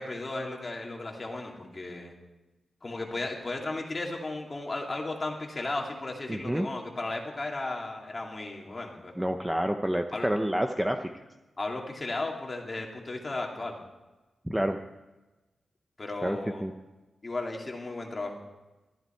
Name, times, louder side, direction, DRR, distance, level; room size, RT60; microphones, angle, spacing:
voice 1, 0.0-2.1 2.8-9.1 10.1-10.3 11.6-13.8 16.0-16.6 17.2-18.4, left 2 dB, 25° left, 0 dB, 2.5 m, -35 dB
voice 2, 6.3-6.7 9.2-11.1 14.5-14.8 16.2-16.7, equal, 5° right, 6 dB, 0.6 m, -28 dB
22.5 x 13.0 x 4.5 m, 1.1 s
wide cardioid pair, 165°, 0 cm